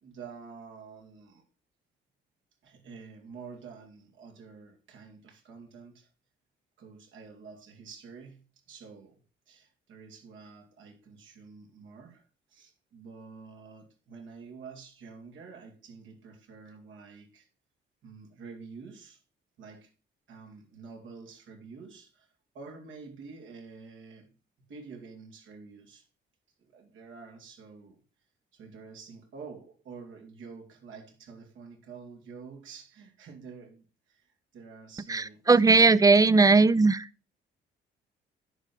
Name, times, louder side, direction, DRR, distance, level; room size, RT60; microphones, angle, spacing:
voice 1, 0.0-1.4 2.6-6.1 6.8-17.5 18.0-19.2 19.6-19.9 20.3-24.3 24.7-26.1 26.6-28.0 28.5-36.2, right 5 dB, 75° right, 2.7 m, -48 dB
voice 2, 35.1-37.1, right 3 dB, 15° right, 0.5 m, -19 dB
11.0 x 5.6 x 4.6 m
cardioid pair, 90°, 20 cm